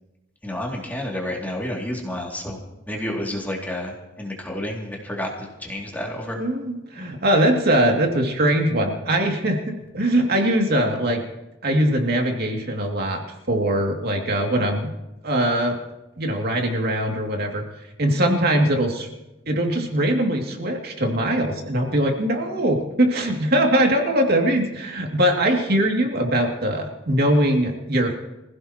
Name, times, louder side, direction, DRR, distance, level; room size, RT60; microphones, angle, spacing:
voice 1, 0.4-2.6 2.9-6.4, left 1 dB, 10° left, -2 dB, 2.5 m, -30 dB
voice 2, 6.4-11.2 11.6-14.9 15.2-15.8 16.2-17.6 18.0-19.1 19.5-28.1, right 1 dB, 55° right, 2 dB, 2.5 m, -21 dB
25.0 x 16.0 x 3.0 m, 0.96 s
head